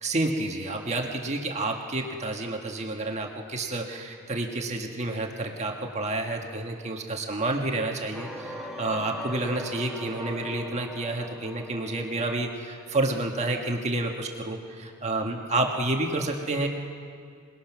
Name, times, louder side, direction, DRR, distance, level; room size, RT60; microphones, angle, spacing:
voice 1, 0.0-16.7, right 2 dB, 30° right, 2 dB, 1.5 m, -29 dB
sound 1, 8.1-13.2, left 1 dB, ahead, 1.6 m, -40 dB
27.5 x 20.0 x 6.1 m, 2.3 s
head